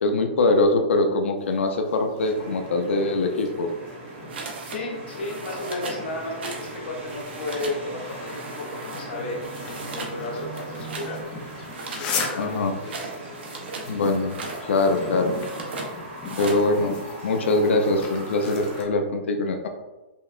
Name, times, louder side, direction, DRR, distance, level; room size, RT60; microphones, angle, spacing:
voice 1, 0.0-3.7 12.4-12.7 13.9-14.4 14.6-15.3 16.4-16.9 17.2-19.7, left 2 dB, 85° left, 5 dB, 0.5 m, -22 dB
sound 1, 1.4-18.8, left 4 dB, 15° left, 0.4 m, -39 dB
sound 2, 2.3-18.8, right 2 dB, 80° right, 1.4 m, -39 dB
sound 3, 4.3-4.8 5.1-6.0 6.4-6.8 7.0-7.8 8.3-9.0 9.4-10.2 10.5-11.1 11.7-13.9 14.2-14.6 15.3-15.9 16.2-16.6, right 3 dB, 65° right, 0.7 m, -37 dB
voice 2, 4.7-9.4 9.9-11.2 11.8-13.0, left 2 dB, 60° left, 0 dB, 0.9 m, -33 dB
5.3 x 2.1 x 2.4 m, 1.1 s
hypercardioid pair, 175°, 6 cm